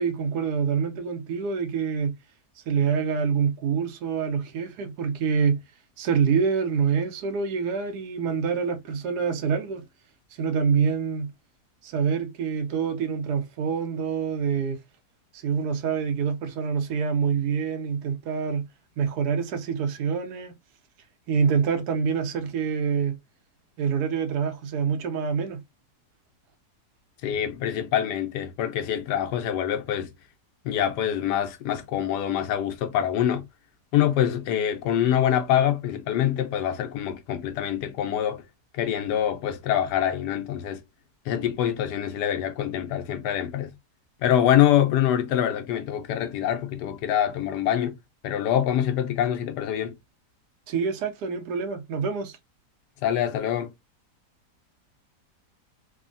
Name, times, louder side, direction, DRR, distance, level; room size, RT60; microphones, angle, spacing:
voice 1, 0.0-2.2 2.7-5.6 6.0-9.8 10.4-11.3 11.8-14.8 15.3-18.7 19.0-20.5 21.3-23.2 23.8-25.6 50.7-52.4, right 6 dB, 75° right, 1.1 m, -26 dB
voice 2, 27.2-30.1 30.6-33.4 33.9-38.4 38.7-40.8 41.3-43.7 44.2-48.0 48.2-50.0 53.0-53.7, left 10 dB, 80° left, 1.2 m, -25 dB
3.4 x 2.2 x 2.5 m
omnidirectional pair, 1.8 m